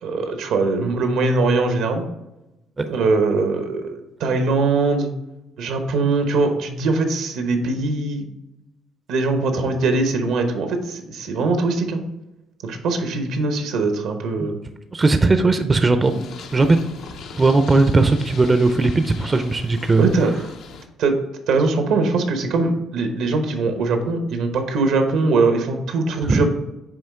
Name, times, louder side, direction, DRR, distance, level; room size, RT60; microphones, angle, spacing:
voice 1, 0.0-2.0 2.8-5.1 5.6-8.3 9.1-12.0 12.6-14.6 20.0-20.3 21.0-21.2 21.5-26.5, right 3 dB, 80° right, 6 dB, 1.0 m, -21 dB
voice 2, 14.9-16.8 17.4-20.1 26.3-26.5, right 3 dB, 25° right, 8 dB, 0.5 m, -18 dB
Purr, 16.0-20.9, left 5 dB, 75° left, 0.7 m, -40 dB
8.8 x 3.0 x 3.6 m, 0.97 s
supercardioid pair, 80°, 0 cm